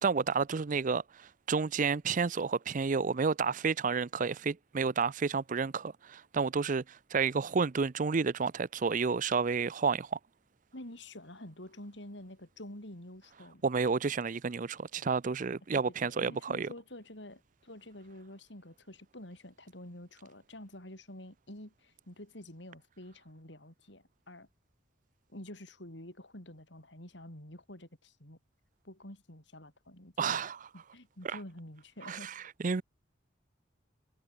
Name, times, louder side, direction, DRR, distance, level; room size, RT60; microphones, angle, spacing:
voice 1, 0.0-10.2 13.6-16.7 30.2-30.6 31.2-31.4 32.0-32.8, right 5 dB, 45° right, 0.5 m, -31 dB
voice 2, 10.7-13.7 15.7-24.5 25.3-28.4 28.8-32.3, left 1 dB, 65° left, 6.3 m, -48 dB
head